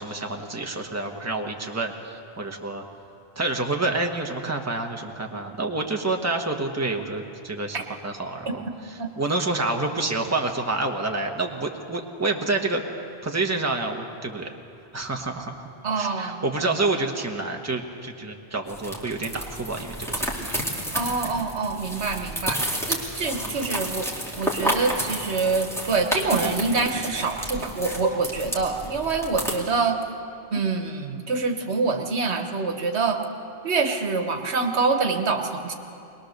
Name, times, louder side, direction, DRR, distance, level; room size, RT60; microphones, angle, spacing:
voice 1, 0.0-2.8 3.3-7.8 8.0-8.6 9.2-12.8 13.2-14.5 14.9-15.7 15.9-20.4, right 2 dB, 15° right, 2 dB, 1.2 m, -28 dB
voice 2, 15.8-16.5 20.9-24.1 24.4-30.0 30.5-33.2 33.6-35.7, right 4 dB, 80° right, 5 dB, 1.5 m, -25 dB
sound 1, 18.7-29.6, equal, ahead, 2.3 m, -31 dB
21.5 x 20.5 x 6.7 m, 2.7 s
omnidirectional pair, 1.1 m